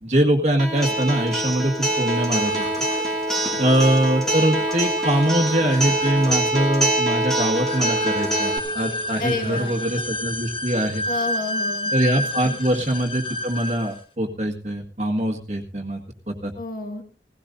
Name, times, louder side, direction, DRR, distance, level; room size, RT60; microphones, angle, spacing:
voice 1, 0.0-2.6 3.6-11.0 11.9-16.0 16.3-16.5, right 1 dB, 40° right, 2 dB, 1.7 m, -23 dB
Acoustic guitar, 0.6-8.6, right 1 dB, 5° left, 2.5 m, -24 dB
sound 1, 2.1-14.0, left 1 dB, 30° left, 1.5 m, -31 dB
voice 2, 9.2-9.7 11.1-11.9 12.4-12.6 16.6-17.0, left 3 dB, 50° left, 4 dB, 2.2 m, -29 dB
17.5 x 16.5 x 2.7 m, 0.35 s
head